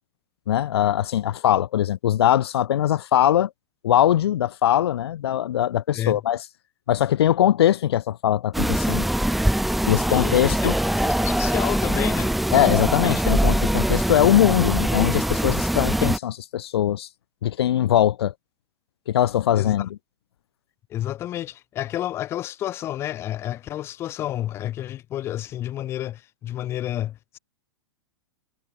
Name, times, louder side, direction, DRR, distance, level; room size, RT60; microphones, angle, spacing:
voice 1, 0.5-3.5 3.8-6.4 6.9-9.1 9.9-10.7 12.5-17.1 17.4-18.3 19.1-19.9, left 11 dB, 70° left, 1.7 m, -21 dB
sound 1, 8.5-16.2, right 1 dB, ahead, 0.7 m, -22 dB
voice 2, 9.9-12.3 19.5-19.8 20.9-27.4, left 12 dB, 20° left, 2.8 m, -30 dB
supercardioid pair, 175°, 14 cm